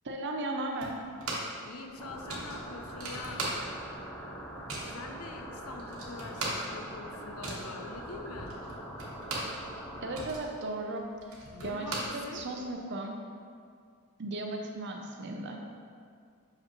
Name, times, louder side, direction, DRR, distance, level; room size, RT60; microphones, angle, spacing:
voice 1, 0.0-0.9 10.0-11.1 11.6-13.2 14.2-15.6, right 2 dB, 55° right, 2 dB, 0.7 m, -36 dB
sound 1, 0.8-1.6 1.9-2.0 2.3-4.0 4.2-5.0 5.5-5.6 5.8-9.6 9.9-12.7, right 2 dB, 75° right, 1.1 m, -38 dB
voice 2, 1.6-3.5 4.7-8.6 11.5-12.5, left 3 dB, 85° left, 5 dB, 0.6 m, -44 dB
sound 2, 2.0-10.2, equal, 10° left, 0.8 m, -43 dB
6.2 x 5.0 x 3.0 m, 2.2 s
head